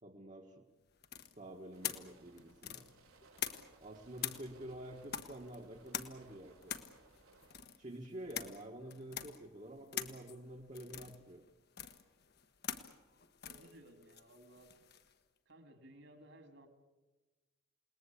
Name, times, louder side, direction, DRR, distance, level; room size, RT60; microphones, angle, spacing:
voice 1, 0.0-0.6 1.4-2.9 3.8-6.7 7.8-11.4, right 1 dB, 35° right, 0 dB, 1.5 m, -49 dB
sound 1, 1.0-3.9 4.2-15.1, left 9 dB, 50° left, 1.2 m, -45 dB
sound 2, 1.7-7.5, right 2 dB, 90° right, 4.4 m, -64 dB
voice 2, 13.4-14.7 15.5-16.7, right 1 dB, 60° right, 8 dB, 2.9 m, -58 dB
28.5 x 19.5 x 8.5 m, 1.2 s
head